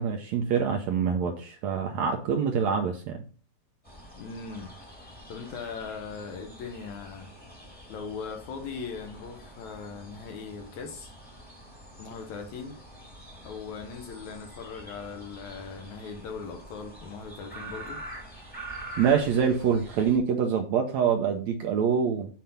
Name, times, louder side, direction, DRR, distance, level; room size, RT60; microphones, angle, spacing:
voice 1, 0.0-3.2 19.0-22.3, right 7 dB, 75° right, 1.7 m, -25 dB
sound 1, 3.8-20.2, right 1 dB, 5° left, 1.2 m, -46 dB
voice 2, 4.1-4.7 5.0-7.3 7.9-11.2 12.0-12.8 13.4-18.0, left 5 dB, 70° left, 2.0 m, -39 dB
7.7 x 4.3 x 5.4 m
omnidirectional pair, 4.0 m